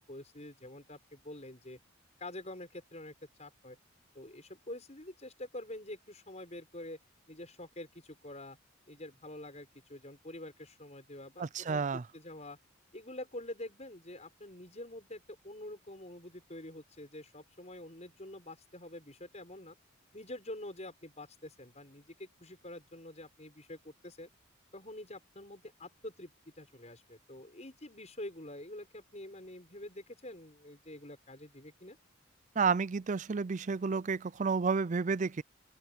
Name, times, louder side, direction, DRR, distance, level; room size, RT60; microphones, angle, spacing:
voice 1, 0.0-1.8 2.2-3.1 3.4-3.8 4.2-7.0 7.3-8.6 8.9-12.6 12.9-19.8 20.1-24.3 24.7-32.0, left 1 dB, 35° left, 6.8 m, -46 dB
voice 2, 11.4-12.0 32.6-35.4, right 5 dB, 35° right, 0.4 m, -31 dB
open air
head